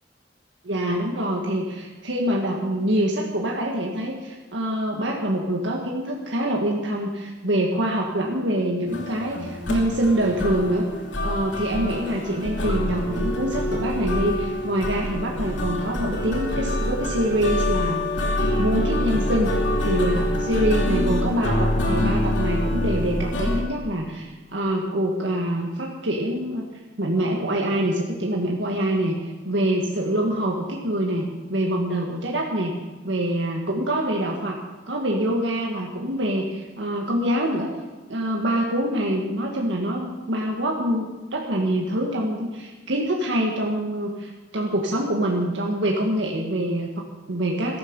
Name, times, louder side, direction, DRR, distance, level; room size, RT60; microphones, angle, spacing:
voice 1, 0.6-10.9 11.2-18.0 18.6-19.5 19.8-26.7 27.0-32.8 33.0-34.6 34.9-37.7 38.1-47.8, right 1 dB, 75° right, -1 dB, 1.8 m, -25 dB
sound 1, 8.9-23.6, left 1 dB, 80° left, 2.9 m, -25 dB
15.0 x 13.5 x 5.5 m, 1.3 s
head